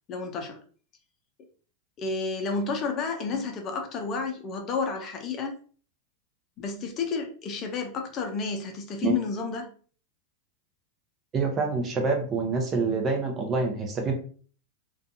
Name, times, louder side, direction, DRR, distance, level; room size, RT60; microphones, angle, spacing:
voice 1, 0.1-0.6 2.0-5.5 6.6-9.7, left 4 dB, 40° left, 0.6 m, -31 dB
voice 2, 11.3-14.1, right 4 dB, 30° right, 0.7 m, -26 dB
2.5 x 2.3 x 2.6 m
hypercardioid pair, 115°, 0 cm